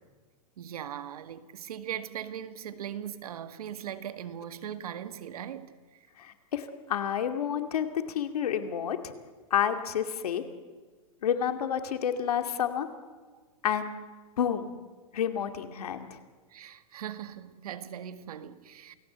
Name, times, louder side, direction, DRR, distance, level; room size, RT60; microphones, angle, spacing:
voice 1, 0.6-6.1 16.5-19.0, right 10 dB, 80° right, 1.8 m, -39 dB
voice 2, 6.2-9.1 9.5-10.4 11.2-12.9 13.6-13.9 14.4-14.7 15.1-16.1, left 9 dB, 90° left, 2.4 m, -29 dB
28.0 x 19.0 x 8.0 m
supercardioid pair, 165°, 19 cm